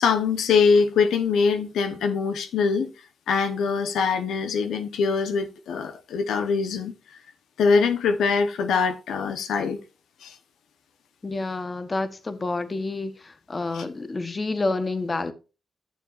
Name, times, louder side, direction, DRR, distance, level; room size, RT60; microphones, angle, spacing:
voice 1, 0.0-2.9 3.3-6.9 7.6-9.8 10.2-10.4 13.7-13.8, left 5 dB, 85° left, 1.0 m, -23 dB
voice 2, 11.2-15.3, left 3 dB, 30° left, 1.2 m, -29 dB
12.5 x 7.2 x 2.6 m
cardioid pair, 75°, 0 cm